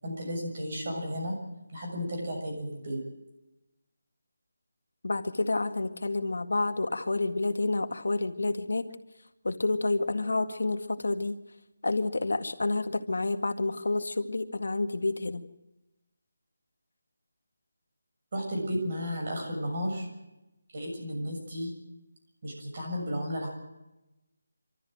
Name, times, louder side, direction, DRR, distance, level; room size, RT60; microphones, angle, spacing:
voice 1, 0.0-1.3 1.7-3.0 18.3-20.1 20.7-21.7 22.4-23.5, equal, 35° right, 1 dB, 6.7 m, -33 dB
voice 2, 5.0-8.9 9.4-11.4 11.8-15.4, left 2 dB, 75° left, 7 dB, 1.9 m, -29 dB
26.0 x 13.5 x 7.8 m, 0.97 s
figure-of-eight pair, 175°, 0 cm